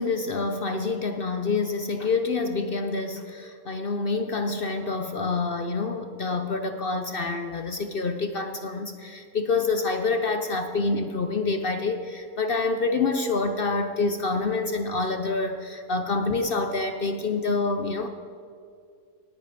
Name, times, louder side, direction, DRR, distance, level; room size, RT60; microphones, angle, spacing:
voice 1, 0.0-18.1, left 3 dB, 50° left, 7 dB, 0.7 m, -27 dB
19.0 x 9.2 x 5.1 m, 2.3 s
omnidirectional pair, 1.7 m